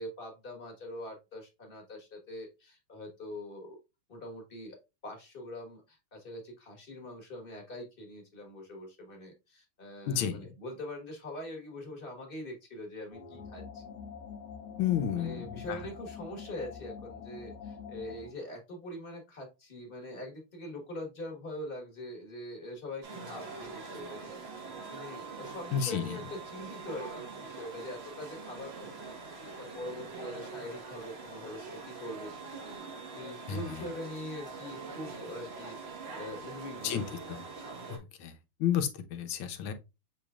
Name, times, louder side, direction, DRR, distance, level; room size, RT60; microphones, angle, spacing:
voice 1, 0.0-3.8 4.1-4.8 5.0-13.8 15.2-24.4 24.9-31.6 31.9-32.3 32.7-32.8 33.1-37.1, left 1 dB, 35° left, 1.1 m, -43 dB
voice 2, 10.1-10.5 14.8-15.6 25.7-26.2 33.5-33.9 36.8-37.0 37.3-37.4 38.2-38.3 38.6-39.7, left 9 dB, 80° left, 1.5 m, -31 dB
sound 1, 13.1-18.4, left 6 dB, 60° left, 1.1 m, -45 dB
sound 2, 23.0-38.0, right 4 dB, 45° right, 0.9 m, -44 dB
7.0 x 3.1 x 2.3 m
omnidirectional pair, 2.3 m